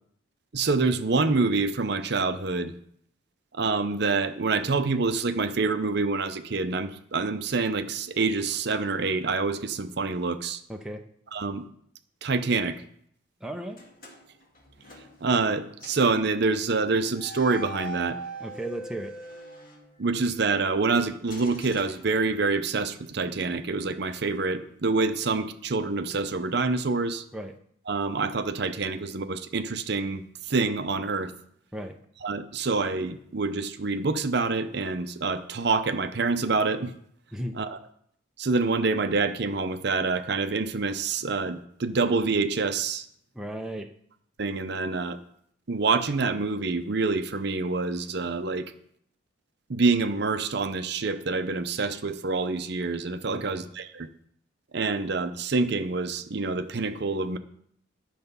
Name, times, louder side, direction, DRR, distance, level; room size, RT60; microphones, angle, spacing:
voice 1, 0.5-2.7 3.5-10.6 11.3-11.6 12.2-12.8 15.2-18.2 20.0-27.2 27.9-31.3 32.2-36.9 37.5-37.8 38.4-43.0 44.4-45.2 45.7-48.7 49.7-54.1 54.7-57.4, right 3 dB, 55° right, 10 dB, 0.6 m, -26 dB
voice 2, 10.7-11.0 13.4-13.8 18.4-19.1 27.3-27.5 31.7-32.0 37.3-37.6 43.3-43.9 53.3-53.7, right 1 dB, 5° right, 3 dB, 0.5 m, -35 dB
sound 1, 13.7-15.5 15.8-16.1 17.1-20.4 21.2-22.7, right 2 dB, 45° left, 1.9 m, -42 dB
10.5 x 6.7 x 5.4 m, 0.67 s
head